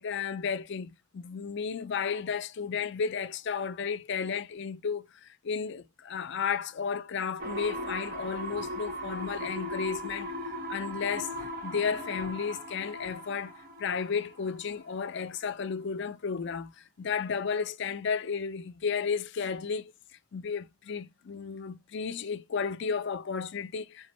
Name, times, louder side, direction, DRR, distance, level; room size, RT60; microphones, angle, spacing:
voice 1, 0.0-10.3 10.7-11.3 11.6-19.9 20.3-24.1, left 6 dB, 55° left, 0.4 m, -33 dB
sound 1, 7.4-15.1 15.4-15.5, equal, 40° right, 0.8 m, -38 dB
4.2 x 3.7 x 3.0 m
head